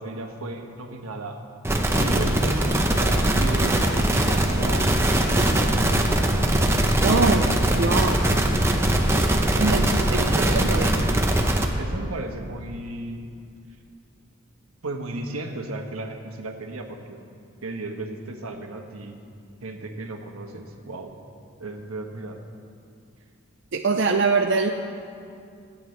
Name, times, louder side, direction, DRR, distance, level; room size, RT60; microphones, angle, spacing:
voice 1, 0.0-1.4 1.9-5.0 5.3-5.8 9.5-10.9 11.5-13.3 14.8-17.2 17.6-19.2 19.6-21.1 21.6-22.4, right 2 dB, 80° right, 4 dB, 1.2 m, -34 dB
brown noise fm distortion, 1.6-11.7, right 1 dB, 10° right, 0.7 m, -21 dB
voice 2, 7.0-7.5 7.7-8.3 9.6-11.1 23.7-24.7, right 4 dB, 55° right, 3 dB, 0.5 m, -23 dB
25.0 x 9.4 x 3.3 m, 2.4 s
head